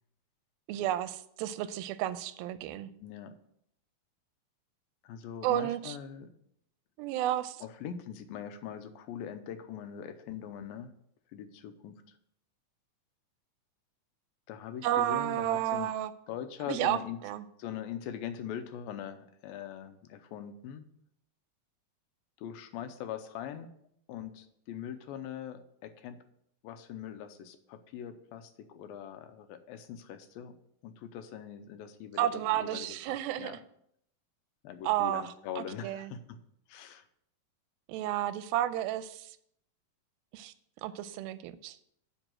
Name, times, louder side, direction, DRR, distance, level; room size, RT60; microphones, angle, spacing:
voice 1, 0.7-2.9 5.4-6.0 7.0-7.6 14.8-16.1 16.7-17.4 32.2-33.6 34.8-36.1 37.9-39.3 40.3-40.5 40.8-41.8, right 13 dB, 90° right, 14 dB, 2.4 m, -32 dB
voice 2, 3.0-3.4 5.0-6.3 7.6-10.9 11.3-12.0 14.5-15.9 16.3-17.2 17.6-20.9 22.4-23.7 24.1-26.2 26.6-30.6 30.8-33.6 34.6-36.4 36.7-37.1, left 9 dB, 90° left, 9 dB, 2.5 m, -42 dB
9.1 x 4.5 x 7.6 m, 0.72 s
omnidirectional pair, 4.2 m